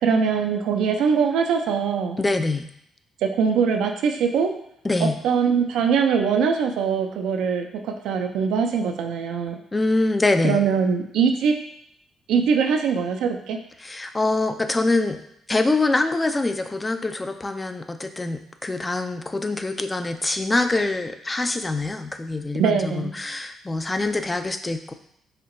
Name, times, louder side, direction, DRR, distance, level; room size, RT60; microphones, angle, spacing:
voice 1, 0.0-2.2 3.2-4.5 5.0-9.6 10.4-11.6 12.3-13.6 22.6-23.1, right 6 dB, 85° right, 5 dB, 0.4 m, -22 dB
voice 2, 2.2-2.7 4.8-5.2 9.7-10.6 13.8-15.2 15.5-24.9, left 2 dB, 20° left, 8 dB, 0.3 m, -24 dB
4.3 x 2.9 x 2.6 m, 0.73 s
cardioid pair, 90°, 0 cm